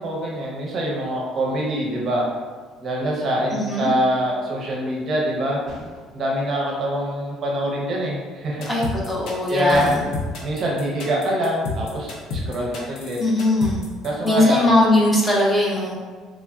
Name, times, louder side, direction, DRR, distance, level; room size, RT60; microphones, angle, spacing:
voice 1, 0.0-2.2 2.8-5.6 6.1-8.7 9.5-9.9 10.4-13.2 14.0-14.7, right 1 dB, 35° right, -3 dB, 0.5 m, -24 dB
voice 2, 3.5-3.9 8.7-10.0 13.2-13.9 14.2-16.0, left 1 dB, 10° left, -5 dB, 0.6 m, -20 dB
sound 1, 5.7-6.2 9.7-10.5, left 1 dB, 80° left, 1.2 m, -34 dB
sound 2, 8.6-14.3, left 4 dB, 60° left, 0.5 m, -31 dB
3.1 x 2.5 x 2.2 m, 1.5 s
cardioid pair, 160°, 0 cm